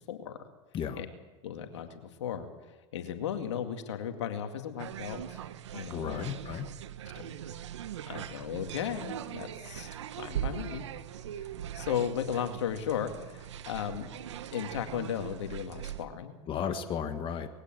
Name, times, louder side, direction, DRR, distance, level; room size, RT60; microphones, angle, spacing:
voice 1, 0.1-0.4 1.0-1.1 1.4-5.4 5.7-6.2 7.1-7.3 8.1-9.9 10.2-10.8 11.7-14.1 14.5-16.4, left 9 dB, 80° left, 6 dB, 2.2 m, -35 dB
sound 1, 4.8-16.0, right 10 dB, 85° right, 1.2 m, -40 dB
voice 2, 5.9-6.7 16.5-17.5, left 8 dB, 35° left, 7 dB, 1.6 m, -34 dB
21.0 x 16.0 x 7.7 m, 1.2 s
hypercardioid pair, 100°, 15 cm